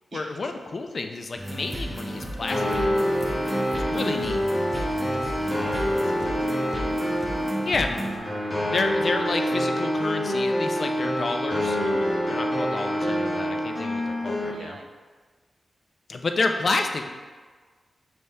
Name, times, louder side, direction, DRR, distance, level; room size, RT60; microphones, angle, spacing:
voice 1, 0.1-2.8 3.8-4.4 7.6-7.9 8.7-11.8 12.3-14.8 16.1-17.1, left 3 dB, 55° left, 5 dB, 0.3 m, -29 dB
sound 1, 1.3-8.2, right 1 dB, 5° right, 0.8 m, -34 dB
sound 2, 2.5-14.5, equal, 35° left, 0.8 m, -26 dB
voice 2, 5.1-6.5 6.8-7.1 11.8-12.1 14.5-14.8, right 3 dB, 65° right, 4 dB, 0.4 m, -46 dB
5.6 x 3.3 x 2.7 m, 1.5 s
wide cardioid pair, 90°, 0 cm